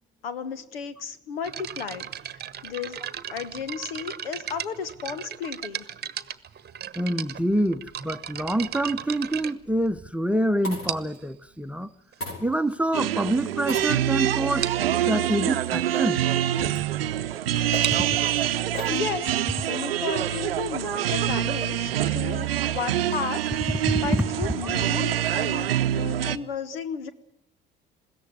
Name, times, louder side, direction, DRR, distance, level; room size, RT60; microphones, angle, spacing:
voice 1, 0.2-3.0 3.3-5.8 18.9-19.4 19.7-27.1, left 6 dB, 80° left, 1.4 m, -34 dB
sound 1, 1.4-10.3 10.9-11.3 12.1-12.2 12.8-12.9 13.2-13.4 13.7-13.8 14.1-14.2 14.6-14.9 17.6-21.1, right 9 dB, 35° right, 1.1 m, -37 dB
voice 2, 7.0-11.9 12.4-14.7 15.1-16.2 18.1-18.2 23.9-24.2 24.6-24.7, right 1 dB, 5° right, 1.0 m, -26 dB
sound 2, 8.9-9.3 10.3-11.2 12.2-12.9 13.6-14.4 15.1-15.2 17.3-19.2 20.3-20.8, left 1 dB, 50° left, 6.6 m, -38 dB
sound 3, 12.9-26.4, right 11 dB, 85° right, 0.7 m, -26 dB
21.0 x 16.5 x 9.6 m
hypercardioid pair, 60°, 29 cm